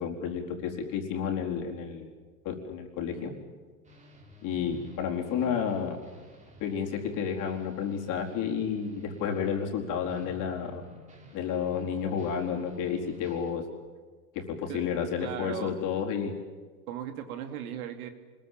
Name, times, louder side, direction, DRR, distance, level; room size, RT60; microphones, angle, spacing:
voice 1, 0.0-2.1 2.4-3.3 4.4-6.0 6.6-10.8 11.3-13.6 14.3-16.3, left 7 dB, 40° left, 1 dB, 4.4 m, -31 dB
sound 1, 3.8-13.5, right 1 dB, 15° right, 4.2 m, -52 dB
voice 2, 15.2-15.8 16.9-18.1, right 10 dB, 65° right, 7 dB, 2.8 m, -37 dB
26.0 x 21.0 x 7.7 m, 1.5 s
supercardioid pair, 130°, 46 cm